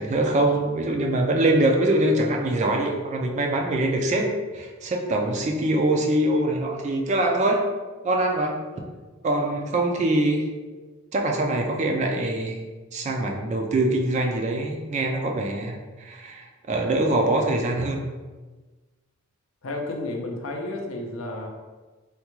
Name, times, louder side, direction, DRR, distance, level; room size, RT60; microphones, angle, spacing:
voice 1, 0.0-7.7 8.0-8.6 9.2-10.4 11.1-12.6 12.9-18.0, right 1 dB, 30° right, 2 dB, 0.3 m, -23 dB
voice 2, 19.6-21.5, left 2 dB, 65° left, 2 dB, 0.5 m, -31 dB
3.5 x 2.2 x 2.9 m, 1.3 s
head